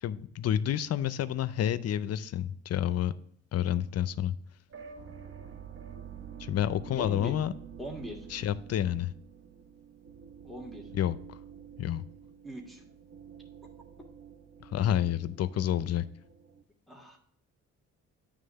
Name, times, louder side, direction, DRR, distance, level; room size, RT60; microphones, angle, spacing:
voice 1, 0.0-3.1 3.5-4.3 6.4-7.5 8.3-9.1 10.9-11.4 11.8-12.0 14.7-16.0, left 11 dB, 55° left, 15 dB, 0.5 m, -29 dB
sound 1, 4.7-16.6, right 8 dB, 45° right, 0.9 m, -48 dB
voice 2, 7.0-7.3 7.8-8.3 10.4-10.9 12.4-12.8 15.6-15.7 16.9-17.2, equal, ahead, 0 dB, 1.5 m, -41 dB
9.1 x 3.6 x 6.6 m, 0.63 s
cardioid pair, 90°, 30 cm